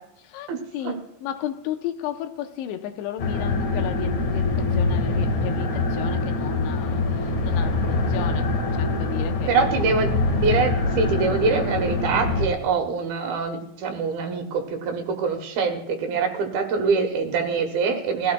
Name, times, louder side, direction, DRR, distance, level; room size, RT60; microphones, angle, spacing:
voice 1, 0.2-9.6 18.2-18.3, left 11 dB, 90° left, 3.1 m, -34 dB
sound 1, 3.2-12.5, left 3 dB, 60° left, 2.0 m, -24 dB
voice 2, 9.5-10.1 10.4-18.3, right 4 dB, 70° right, 2.7 m, -24 dB
22.0 x 14.0 x 2.2 m
omnidirectional pair, 5.0 m